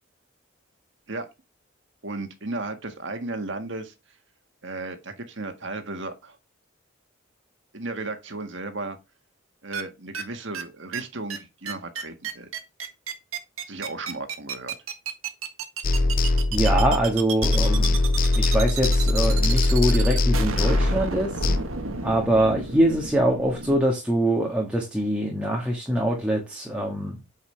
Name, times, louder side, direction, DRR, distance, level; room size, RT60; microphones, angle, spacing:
voice 1, 2.0-3.9 4.6-6.4 7.7-9.0 9.6-12.5 13.7-14.8, right 2 dB, 60° right, 1.7 m, -34 dB
sound 1, 9.7-9.8 10.1-10.2 10.5-10.6 10.9-11.0 11.3-11.4 11.7-23.8, right 5 dB, 85° right, 1.6 m, -32 dB
sound 2, 15.8-17.2 17.4-21.6, left 2 dB, 45° left, 0.7 m, -21 dB
voice 2, 16.5-18.0 18.3-21.5 22.0-27.2, right 1 dB, 5° right, 1.7 m, -24 dB
8.6 x 5.7 x 3.3 m
head